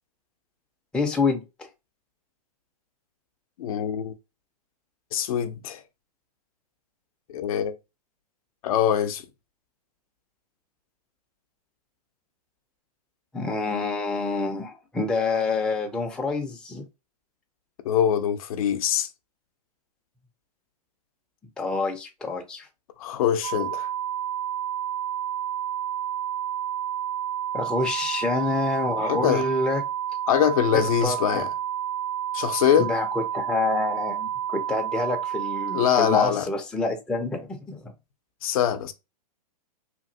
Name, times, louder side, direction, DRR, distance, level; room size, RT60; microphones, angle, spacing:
voice 1, 0.9-1.7 13.3-16.8 21.6-22.7 27.5-29.8 30.7-31.4 32.8-37.9, left 3 dB, 5° left, 0.4 m, -27 dB
voice 2, 3.6-4.1 5.1-5.8 7.3-7.7 8.6-9.2 17.8-19.1 23.0-23.9 29.0-29.4 30.3-31.5 32.3-32.9 35.7-36.4 38.4-38.9, left 9 dB, 60° left, 0.5 m, -23 dB
sound 1, 23.4-36.3, right 10 dB, 55° right, 0.6 m, -30 dB
2.9 x 2.5 x 2.6 m
hypercardioid pair, 120°, 21 cm